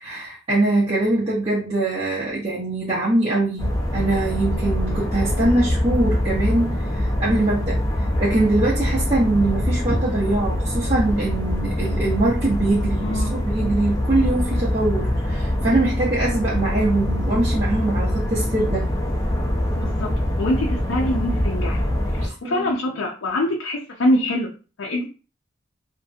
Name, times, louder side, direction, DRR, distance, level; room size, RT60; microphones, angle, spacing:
voice 1, 0.0-7.8 8.2-18.9 22.2-22.7, right 2 dB, 35° right, -6 dB, 0.6 m, -23 dB
sound 1, 3.6-22.3, left 1 dB, 15° left, 0.4 m, -24 dB
voice 2, 13.0-13.4 19.8-21.8 22.1-24.5 24.8-25.0, left 1 dB, 90° left, -1 dB, 0.5 m, -24 dB
2.7 x 2.5 x 2.4 m, 0.35 s
head